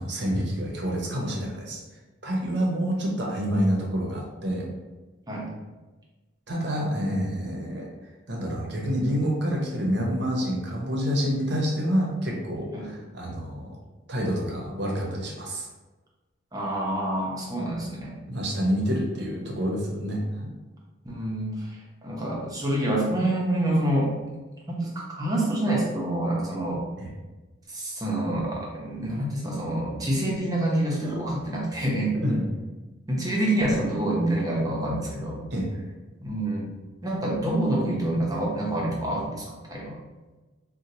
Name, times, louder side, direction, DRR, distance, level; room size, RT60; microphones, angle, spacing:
voice 1, 0.0-1.8 2.2-4.7 6.5-7.9 8.3-13.8 14.1-15.7 18.3-20.5 27.0-27.1 32.2-32.5 35.5-35.7, equal, 60° right, -1 dB, 0.7 m, -27 dB
voice 2, 16.5-18.2 21.0-24.1 24.7-26.8 27.7-32.2 33.1-35.4 36.2-36.7 37.0-40.0, right 1 dB, 20° right, -3 dB, 0.7 m, -27 dB
4.2 x 2.2 x 2.7 m, 1.2 s
head